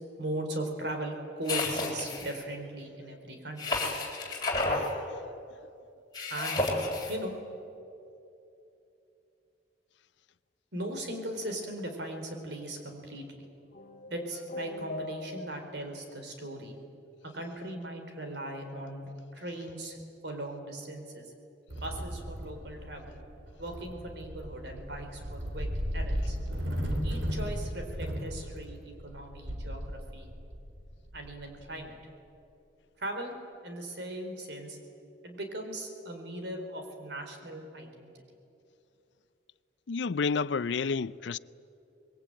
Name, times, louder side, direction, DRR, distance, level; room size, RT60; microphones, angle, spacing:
voice 1, 0.2-3.8 6.3-6.6 7.1-7.4 10.7-13.5 14.1-16.8 17.2-21.3 21.8-23.2 23.6-26.4 27.0-30.3 31.1-32.0 33.0-33.3 33.6-34.8 35.2-38.1, right 1 dB, 65° right, 4.3 m, -39 dB
sound 1, 1.4-2.4 3.6-4.9 6.1-7.1, left 2 dB, 20° left, 3.9 m, -31 dB
voice 2, 4.7-5.3 39.9-41.4, left 5 dB, 70° left, 0.5 m, -31 dB
sound 2, 13.7-15.8, left 2 dB, 45° left, 1.9 m, -41 dB
sound 3, 21.7-31.9, equal, 80° right, 3.4 m, -36 dB
25.5 x 22.0 x 8.9 m
head